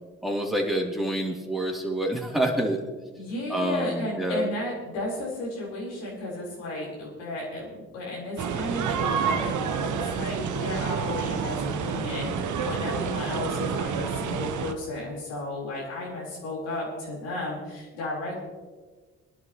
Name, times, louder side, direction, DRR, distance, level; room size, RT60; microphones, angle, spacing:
voice 1, 0.2-2.8 3.5-4.5, right 1 dB, ahead, -1 dB, 3.0 m, -27 dB
voice 2, 3.2-18.4, left 1 dB, 85° left, -5 dB, 4.2 m, -34 dB
sound 1, 8.4-14.7, right 6 dB, 55° right, 1.1 m, -29 dB
23.5 x 11.0 x 3.0 m, 1.4 s
hypercardioid pair, 45°, 35 cm